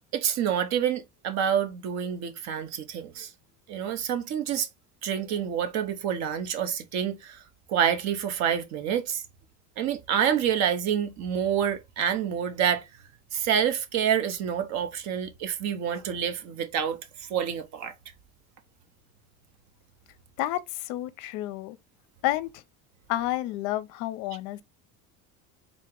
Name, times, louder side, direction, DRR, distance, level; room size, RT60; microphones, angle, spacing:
voice 1, 0.1-3.3 3.7-4.7 5.0-7.4 7.7-9.2 9.8-12.8 13.3-17.9, right 8 dB, 50° right, 0.8 m, -27 dB
voice 2, 20.4-21.8 22.2-22.6 23.1-24.6, left 15 dB, 60° left, 0.5 m, -30 dB
3.9 x 2.9 x 3.6 m
cardioid pair, 165°, 36 cm